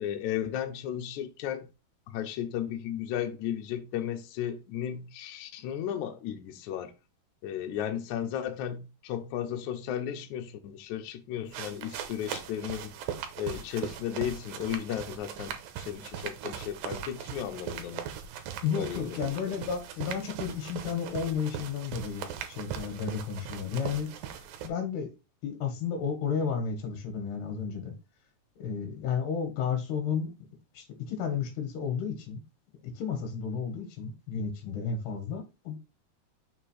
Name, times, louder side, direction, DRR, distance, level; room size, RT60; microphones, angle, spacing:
voice 1, 0.0-1.7 2.1-6.9 7.4-13.0 13.4-18.0 18.8-19.3, left 10 dB, 70° left, 1.9 m, -34 dB
sound 1, 11.5-24.7, right 9 dB, 75° right, 2.5 m, -40 dB
voice 2, 18.6-25.1 25.4-28.0 28.6-30.4 30.8-32.4 32.8-35.8, left 6 dB, 85° left, 3.5 m, -32 dB
6.6 x 3.4 x 4.9 m
omnidirectional pair, 4.4 m